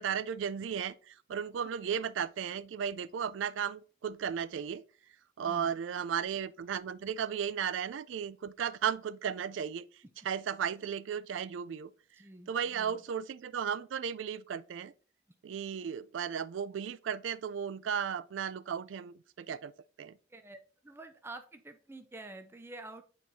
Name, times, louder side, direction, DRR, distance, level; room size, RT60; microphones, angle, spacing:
voice 1, 0.0-4.8 5.4-9.9 10.2-11.9 12.5-14.9 15.4-19.7 20.0-20.2, right 7 dB, 85° right, 0.4 m, -35 dB
voice 2, 5.4-5.8 12.1-13.0 20.3-23.0, right 2 dB, 15° right, 0.5 m, -48 dB
8.1 x 4.5 x 2.7 m
head